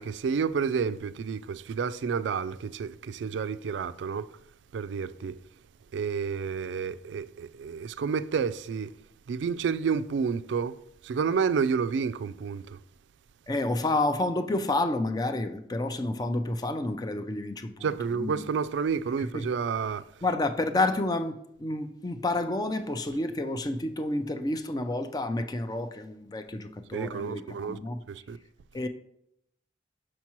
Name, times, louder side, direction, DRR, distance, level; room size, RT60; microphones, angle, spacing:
voice 1, 0.0-4.3 4.7-5.3 5.9-8.9 9.3-10.8 11.0-12.8 17.8-20.0 26.9-27.8 28.1-28.4, right 6 dB, 90° right, 0.3 m, -30 dB
voice 2, 13.5-17.9 18.1-18.4 19.2-19.5 20.2-28.0 28.7-28.9, left 2 dB, 20° left, 0.4 m, -30 dB
6.2 x 5.9 x 3.0 m
head